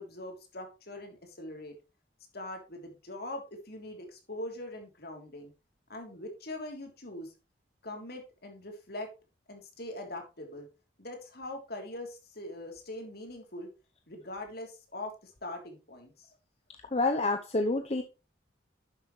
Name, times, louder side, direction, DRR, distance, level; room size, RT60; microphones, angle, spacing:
voice 1, 0.0-1.7 2.3-5.5 5.9-7.3 7.8-9.1 9.5-10.7 11.0-13.7 14.1-16.3, left 1 dB, 60° left, 3 dB, 3.2 m, -42 dB
voice 2, 16.9-18.0, left 2 dB, 35° left, 5 dB, 0.8 m, -28 dB
11.5 x 7.7 x 3.2 m, 0.29 s
head